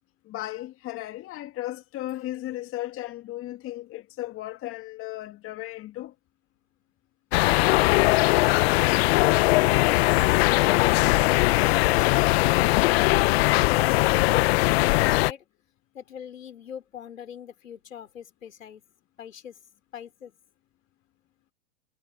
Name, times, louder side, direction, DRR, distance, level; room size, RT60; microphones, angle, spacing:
voice 1, 0.2-6.1, left 15 dB, 35° left, 2.1 m, -35 dB
sound 1, 7.3-15.3, left 22 dB, 50° left, 0.9 m, -20 dB
voice 2, 11.2-15.4 15.9-18.9 19.2-19.6 19.9-20.3, left 9 dB, 80° left, 4.7 m, -41 dB
hypercardioid pair, 105°, 39 cm